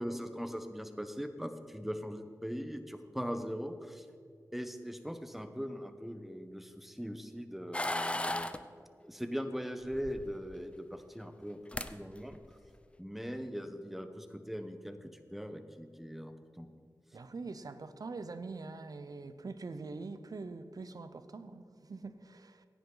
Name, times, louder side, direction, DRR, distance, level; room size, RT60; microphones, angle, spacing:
voice 1, 0.0-4.1 4.5-8.5 9.0-11.6 11.9-12.4 13.0-16.7, equal, 5° right, 1.0 m, -40 dB
sound 1, 7.7-8.6 9.9-10.6 11.4-11.5 11.7-11.9 12.3-12.7, left 1 dB, 15° left, 0.6 m, -35 dB
voice 2, 17.1-22.7, right 3 dB, 65° right, 0.7 m, -44 dB
16.0 x 9.5 x 3.9 m
cardioid pair, 50°, 7 cm